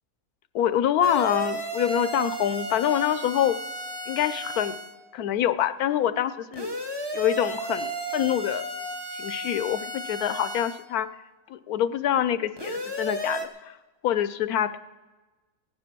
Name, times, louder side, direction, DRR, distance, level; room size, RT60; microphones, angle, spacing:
voice 1, 0.5-3.6 4.1-4.8 5.1-6.8 7.1-8.7 9.1-11.1 11.5-13.8 14.0-14.8, left 10 dB, 75° left, 13 dB, 1.1 m, -25 dB
sound 1, 1.0-5.0 6.5-10.8 12.6-13.5, right 2 dB, 20° right, 0.9 m, -34 dB
16.5 x 9.9 x 6.0 m, 1.2 s
omnidirectional pair, 1.6 m